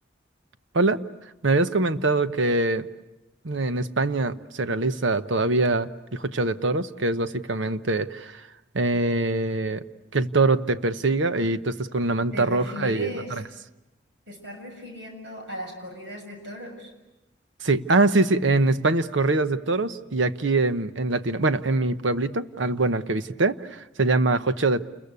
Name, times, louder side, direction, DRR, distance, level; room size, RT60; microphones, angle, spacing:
voice 1, 1.4-2.9 3.4-8.4 8.7-9.8 10.1-13.1 17.6-24.8, right 2 dB, 80° right, 11 dB, 0.9 m, -23 dB
voice 2, 12.3-13.4 14.3-16.9, left 1 dB, 65° right, 3 dB, 7.1 m, -37 dB
29.0 x 22.0 x 8.3 m, 0.98 s
head